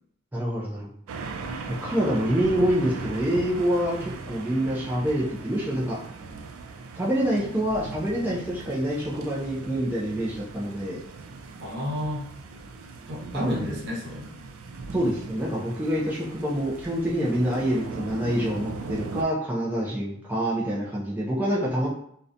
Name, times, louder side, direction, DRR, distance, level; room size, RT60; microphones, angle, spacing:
voice 1, 0.3-0.9 1.7-4.0 4.3-6.0 7.0-11.0 13.3-13.8 14.9-21.9, equal, 10° right, -6 dB, 0.3 m, -26 dB
sound 1, 1.1-19.2, right 4 dB, 90° right, 0.3 m, -39 dB
voice 2, 11.6-12.3 13.1-14.3, left 1 dB, 60° right, -3 dB, 0.7 m, -32 dB
2.7 x 2.1 x 2.4 m, 0.67 s
head